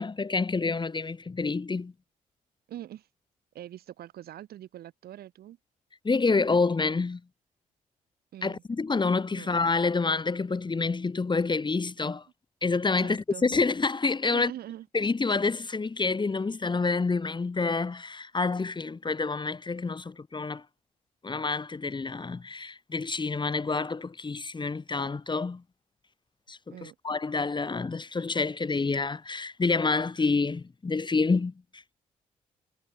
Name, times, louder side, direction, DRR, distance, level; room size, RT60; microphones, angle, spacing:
voice 1, 0.0-1.9 6.0-7.2 8.4-12.3 12.6-14.5 14.9-20.6 21.2-25.6 26.5-31.8, left 4 dB, 25° left, 1.3 m, -28 dB
voice 2, 2.7-3.1 3.5-5.6 8.3-8.6 9.3-9.5 13.0-13.5 14.3-14.9 26.7-27.0, right 12 dB, 65° right, 6.5 m, -43 dB
hypercardioid pair, 40°, 17 cm